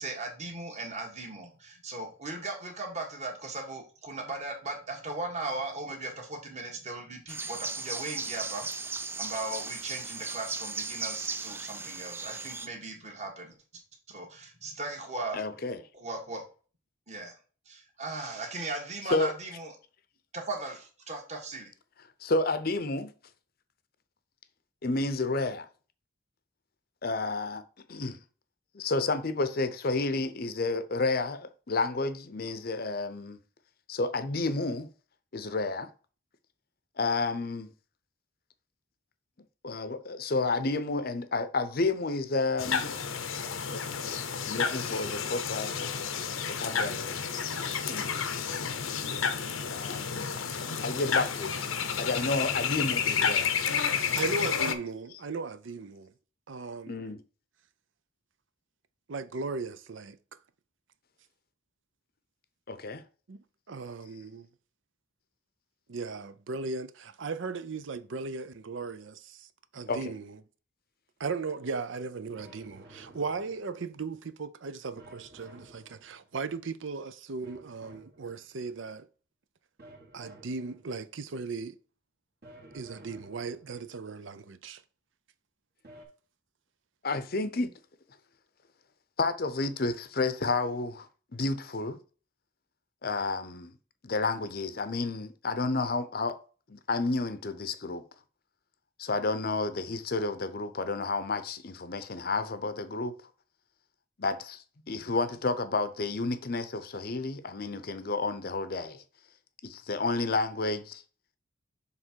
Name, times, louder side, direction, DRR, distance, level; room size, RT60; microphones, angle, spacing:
voice 1, 0.0-13.5 14.1-15.4 15.9-16.4 17.1-17.4 17.7-19.7 20.3-21.7, right 2 dB, 35° right, 1.6 m, -38 dB
sound 1, 7.3-12.7, right 4 dB, 10° right, 0.3 m, -36 dB
voice 2, 15.3-15.8 19.1-19.3 22.2-23.1 24.8-25.7 27.0-27.6 27.9-28.2 28.7-33.4 33.9-34.9 35.3-35.9 37.0-37.7 39.6-42.8 43.7-43.9 44.4-45.7 46.4-47.2 47.7-48.4 49.7-50.4 50.8-53.5 56.9-57.2 62.7-63.0 69.9-70.1 87.0-87.7 89.2-91.1 91.3-92.0 93.0-93.7 94.0-96.4 96.7-98.0 99.0-103.1 104.2-109.0 109.6-111.0, left 3 dB, 50° left, 0.7 m, -31 dB
sound 2, 42.6-54.7, left 6 dB, 90° left, 0.8 m, -31 dB
voice 3, 54.1-56.1 56.5-57.2 59.1-60.2 63.3-64.5 65.9-69.5 69.7-70.4 71.2-79.1 80.1-81.8 82.7-84.8, right 4 dB, 70° right, 0.5 m, -37 dB
sound 3, 72.4-73.9 75.0-76.5 77.4-78.7 79.8-81.2 82.4-83.9 85.8-86.0, right 1 dB, 50° right, 1.8 m, -54 dB
6.8 x 3.6 x 4.5 m
head